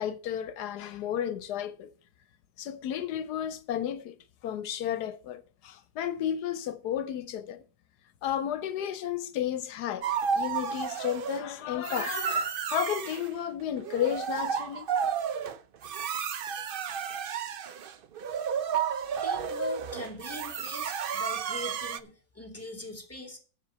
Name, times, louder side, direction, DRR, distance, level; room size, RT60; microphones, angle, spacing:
voice 1, 0.0-1.9 2.6-4.2 4.4-7.6 8.2-14.9, left 10 dB, 85° left, 1.3 m, -33 dB
sound 1, 10.0-11.4 11.8-13.3 13.8-22.0, right 7 dB, 65° right, 0.5 m, -32 dB
voice 2, 19.2-23.4, left 1 dB, 10° left, 2.5 m, -41 dB
7.6 x 6.6 x 8.1 m
omnidirectional pair, 1.7 m